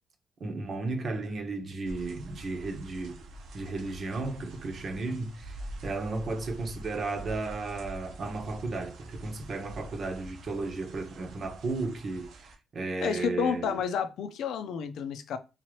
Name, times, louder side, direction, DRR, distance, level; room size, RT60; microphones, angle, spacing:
voice 1, 0.4-3.2 3.5-13.8, right 3 dB, 50° right, 1.1 m, -34 dB
sound 1, 1.8-12.6, right 1 dB, 80° right, 1.1 m, -45 dB
voice 2, 13.0-15.4, left 7 dB, 75° left, 0.5 m, -30 dB
3.8 x 2.9 x 3.1 m
cardioid pair, 90°, 0 cm